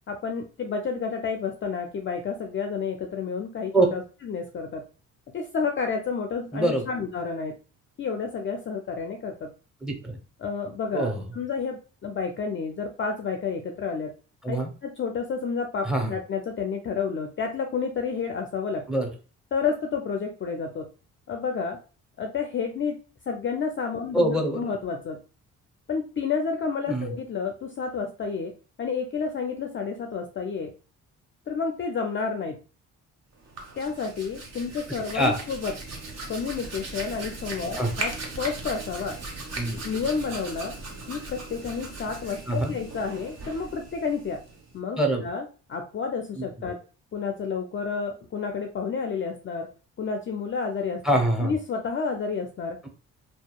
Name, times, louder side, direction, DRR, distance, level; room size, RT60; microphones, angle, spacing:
voice 1, 0.1-4.8 5.3-7.6 8.0-9.5 10.4-14.1 14.5-14.6 14.8-18.8 19.5-20.9 21.3-21.8 22.2-23.0 23.3-25.2 25.9-28.5 28.8-30.7 31.5-32.6 33.8-35.7 36.3-39.2 39.8-40.7 41.1-44.4 44.7-46.8 47.1-49.7 50.0-51.0 51.4-52.8, left 5 dB, 35° left, 4 dB, 0.4 m, -30 dB
voice 2, 6.5-6.8 9.8-10.2 10.9-11.2 14.4-14.7 15.8-16.1 18.9-19.1 24.1-24.7 26.9-27.1 35.1-35.4 37.8-37.9 39.6-39.8 42.5-42.8 45.0-45.2 51.0-51.5, right 1 dB, ahead, 3 dB, 0.7 m, -24 dB
Hands, 33.4-44.8, right 2 dB, 45° right, 0.8 m, -38 dB
2.7 x 2.3 x 2.3 m, 0.35 s
supercardioid pair, 55°, 36 cm